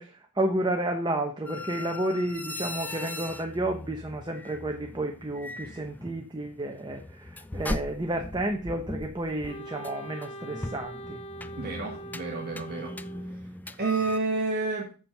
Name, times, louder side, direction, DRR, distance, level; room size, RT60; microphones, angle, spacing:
voice 1, 0.0-11.2, right 1 dB, 20° right, 1.0 m, -31 dB
sound 1, 1.4-14.2, left 2 dB, 10° left, 0.3 m, -39 dB
Wind instrument woodwind instrument, 9.5-13.5, right 2 dB, 25° left, 0.9 m, -42 dB
voice 2, 11.6-13.5 13.8-14.9, right 3 dB, 45° right, 1.6 m, -30 dB
7.5 x 7.2 x 5.9 m
head